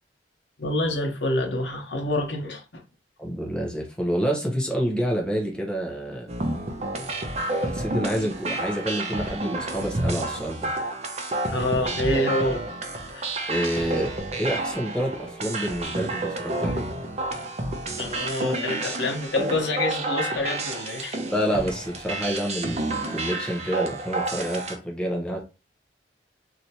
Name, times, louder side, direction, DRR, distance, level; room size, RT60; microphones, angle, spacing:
voice 1, 0.6-2.8 11.5-12.6 13.1-13.3 18.0-21.2 23.6-23.8, left 2 dB, 70° left, 1.0 m, -27 dB
voice 2, 3.2-6.3 7.5-10.7 13.5-14.1 14.4-16.9 21.3-25.4, equal, 5° left, 0.8 m, -28 dB
sound 1, 6.3-24.7, right 2 dB, 40° right, 0.6 m, -30 dB
3.2 x 2.8 x 2.8 m
head